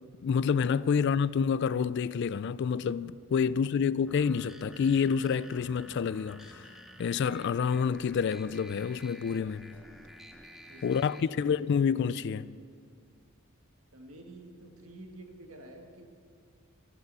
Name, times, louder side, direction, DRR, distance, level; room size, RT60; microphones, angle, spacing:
voice 1, 0.2-6.7 7.0-9.8 10.8-12.6, left 6 dB, 55° left, 0.3 m, -28 dB
sound 1, 4.1-11.2, equal, ahead, 0.8 m, -51 dB
voice 2, 10.7-11.4 13.9-16.1, right 1 dB, 90° right, 1.7 m, -49 dB
14.0 x 13.0 x 5.5 m
head